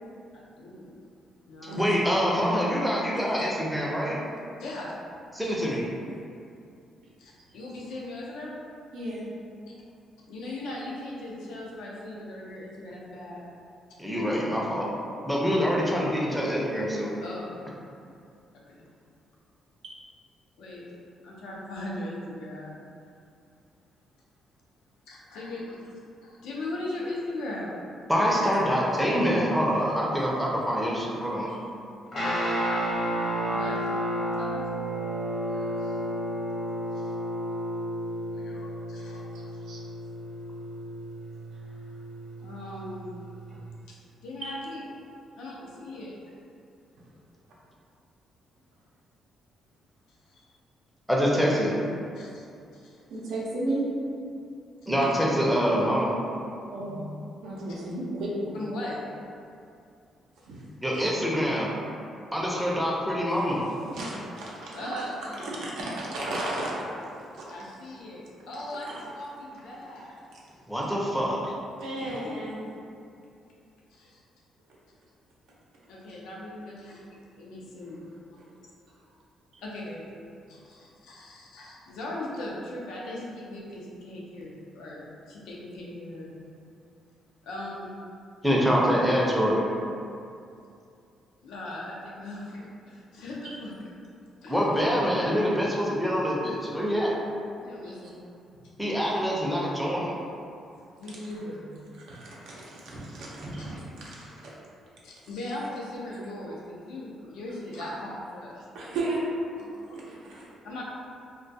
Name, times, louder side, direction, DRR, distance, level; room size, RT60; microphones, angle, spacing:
voice 1, 0.3-0.9 1.5-2.0 3.4-3.5 4.6-4.9 5.4-5.6 7.2-8.5 10.3-13.4 17.2-17.6 18.7-18.9 20.6-20.9 21.2-22.7 25.1-25.9 26.2-27.8 31.3-31.5 33.5-33.8 34.3-34.7 35.5-36.0 36.9-37.1 38.3-39.6 42.4-43.1 43.9-44.0 44.2-44.9 45.3-46.2 50.3-50.5 52.2-52.5 52.7-53.0 58.5-59.0 60.9-61.1 62.4-62.8 64.8-65.7 67.5-70.2 71.9-72.7 73.9-74.2 75.9-77.0 77.3-78.0 79.6-80.1 80.5-86.3 87.4-88.0 91.4-93.7 94.4-94.7 97.6-98.1 101.0-101.6 105.0-108.5 109.6-110.0 110.6-110.8, left 1 dB, 85° left, -4 dB, 0.5 m, -39 dB
voice 2, 1.8-4.2 5.3-5.8 14.0-14.9 15.2-17.1 28.1-31.5 51.1-51.7 54.9-56.1 60.8-61.7 62.3-63.6 70.7-71.5 88.4-89.6 94.5-97.2 98.8-100.2, equal, ahead, -4 dB, 0.5 m, -25 dB
voice 3, 8.9-9.3 19.8-20.0 28.4-28.8 31.5-31.6 39.3-39.8 44.4-44.5 47.0-47.1 53.1-53.8 56.7-57.1 57.4-58.6 60.4-60.6 63.3-63.4 63.9-65.1 65.4-67.0 67.3-67.5 68.9-69.0 71.8-72.6 78.4-78.5 79.5-79.6 97.8-97.9 102.0-104.4 108.7-109.3 109.9-110.4, right 2 dB, 85° right, -6 dB, 0.5 m, -34 dB
Guitar, 32.1-43.6, equal, 50° left, 0.8 m, -32 dB
sound 1, 102.7-104.0, right 1 dB, 40° right, 0.7 m, -40 dB
2.2 x 2.2 x 2.6 m, 2.5 s
cardioid pair, 90°, 0 cm